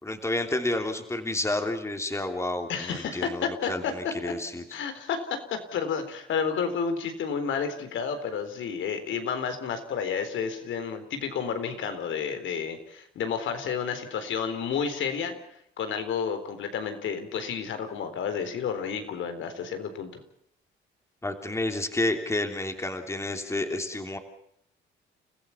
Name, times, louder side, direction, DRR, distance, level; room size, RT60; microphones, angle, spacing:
voice 1, 0.0-4.6 21.2-24.2, left 2 dB, 15° left, 5 dB, 3.2 m, -30 dB
voice 2, 2.7-3.9 4.7-15.3 15.8-20.2, left 6 dB, 75° left, 8 dB, 4.0 m, -31 dB
30.0 x 15.5 x 7.2 m, 0.71 s
cardioid pair, 90°, 20 cm